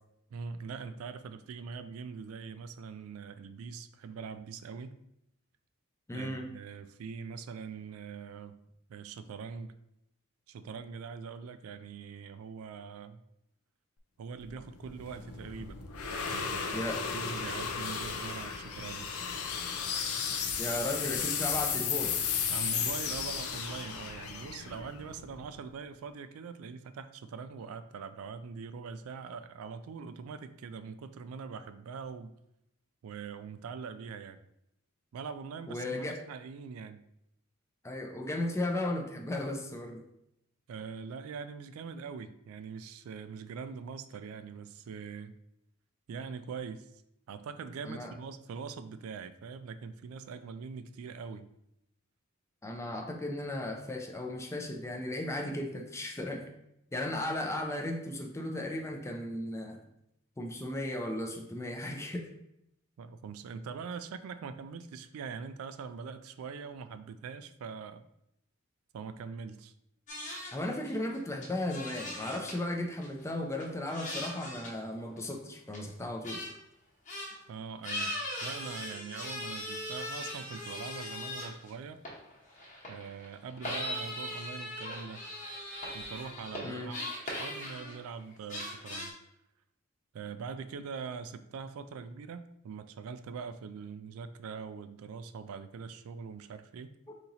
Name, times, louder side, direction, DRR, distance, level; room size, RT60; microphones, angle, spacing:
voice 1, 0.3-5.0 6.1-8.6 8.9-9.7 10.5-13.2 14.2-15.8 16.1-16.9 17.1-19.1 22.5-32.3 33.0-34.4 35.1-37.0 40.7-45.4 46.1-46.9 47.3-51.5 63.0-68.0 68.9-69.7 77.5-82.0 82.9-85.2 85.9-89.1 90.1-97.0, right 5 dB, 80° right, 11 dB, 0.3 m, -43 dB
voice 2, 6.1-6.4 16.7-17.0 20.6-22.2 35.7-36.2 37.8-40.0 47.9-48.1 52.6-56.4 56.9-59.8 60.4-62.3 70.5-76.4 86.6-86.9 97.1-97.2, left 1 dB, 15° left, 3 dB, 0.4 m, -35 dB
sound 1, 14.4-25.7, left 6 dB, 90° left, 0.6 m, -34 dB
sound 2, 70.1-70.6 70.8-71.2 71.4-72.6 73.0-73.1 73.6-74.8 75.1-75.3 75.7-75.8 76.2-76.6 77.1-77.4 77.8-81.7 82.1-88.2 88.5-89.1, left 1 dB, 35° left, 0.9 m, -39 dB
4.1 x 2.9 x 3.9 m, 0.81 s
head